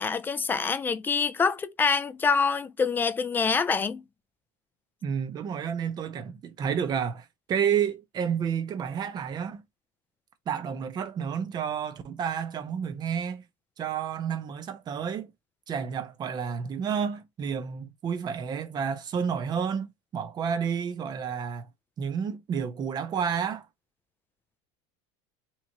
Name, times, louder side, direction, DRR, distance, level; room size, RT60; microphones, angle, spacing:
voice 1, 0.0-4.0, left 5 dB, 15° left, 0.3 m, -26 dB
voice 2, 5.0-9.6 10.5-13.4 13.8-15.3 15.7-21.7 22.0-23.7, right 7 dB, 30° right, 0.6 m, -30 dB
3.4 x 3.0 x 2.7 m
cardioid pair, 150°, 15 cm